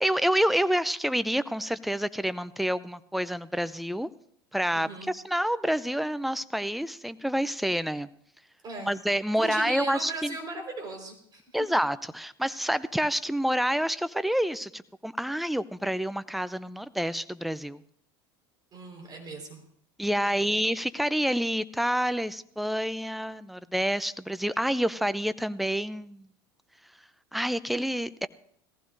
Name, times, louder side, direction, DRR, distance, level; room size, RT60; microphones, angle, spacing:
voice 1, 0.0-4.1 4.5-8.1 8.8-10.4 11.5-17.8 20.0-26.3 27.3-28.3, equal, ahead, 16 dB, 0.5 m, -28 dB
voice 2, 4.7-5.1 8.6-9.0 9.3-11.4 18.7-19.6 20.2-20.6, right 3 dB, 35° right, 3 dB, 4.3 m, -38 dB
19.5 x 15.0 x 2.6 m, 0.67 s
hypercardioid pair, 75°, 12 cm